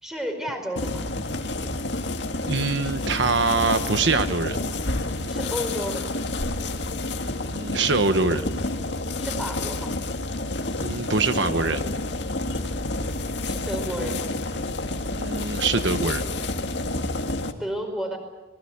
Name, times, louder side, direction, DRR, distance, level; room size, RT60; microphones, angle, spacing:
voice 1, 0.0-1.1 5.3-6.1 9.2-9.9 13.5-14.3 17.6-18.2, equal, ahead, 4 dB, 4.9 m, -31 dB
sound 1, 0.8-17.5, left 2 dB, 65° left, 2.0 m, -29 dB
voice 2, 2.4-4.6 7.4-8.4 10.8-11.8 15.2-16.2, right 4 dB, 65° right, 9 dB, 1.1 m, -24 dB
26.5 x 20.5 x 8.6 m, 1.1 s
head